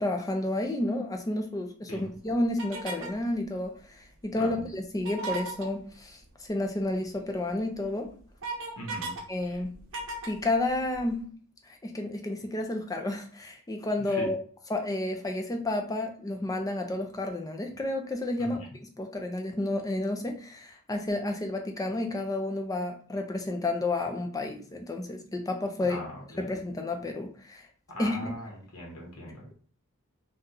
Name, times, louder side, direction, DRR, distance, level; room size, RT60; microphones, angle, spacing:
voice 1, 0.0-6.2 6.5-8.2 9.3-9.7 10.3-11.3 11.8-14.4 14.7-18.6 19.0-26.0 26.4-27.6 28.0-28.4, left 2 dB, 15° left, 4 dB, 0.5 m, -31 dB
sound 1, 2.6-3.2 5.0-5.7 7.3-7.4 7.8-9.2 9.5-11.1, right 3 dB, 60° right, 0.7 m, -36 dB
voice 2, 8.8-9.1 9.4-9.6 14.0-14.3 18.4-18.6 25.8-26.4 27.9-29.4, equal, 90° left, -1 dB, 1.0 m, -40 dB
2.8 x 2.3 x 3.7 m, 0.43 s
head